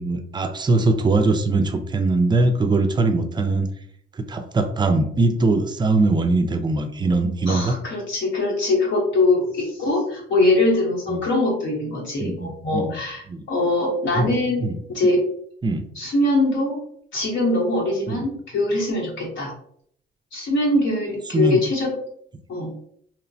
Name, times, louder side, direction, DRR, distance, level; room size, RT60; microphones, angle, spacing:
voice 1, 0.0-3.7 4.2-7.8 11.1-11.2 12.2-13.0 13.3-13.5 14.1-14.3 14.6-14.8 15.6-15.8 18.1-18.3 21.3-21.6, right 3 dB, 20° right, 8 dB, 0.4 m, -21 dB
voice 2, 7.5-14.6 14.9-15.2 16.0-16.8 17.1-19.5 20.3-21.9 22.5-22.7, left 2 dB, 70° left, -3 dB, 0.9 m, -22 dB
2.9 x 2.0 x 2.6 m, 0.64 s
cardioid pair, 90°, 20 cm